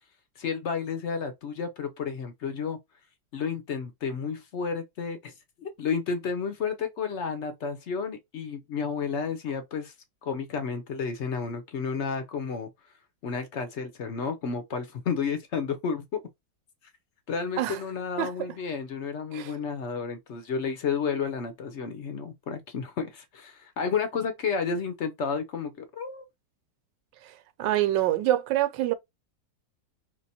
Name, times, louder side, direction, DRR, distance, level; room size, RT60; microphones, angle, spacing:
voice 1, 0.4-2.8 3.3-5.3 5.6-9.9 10.2-12.7 13.2-16.2 17.3-26.2, left 5 dB, 60° left, 0.7 m, -31 dB
voice 2, 27.6-28.9, right 13 dB, 85° right, 1.3 m, -25 dB
3.3 x 2.9 x 4.1 m
omnidirectional pair, 1.9 m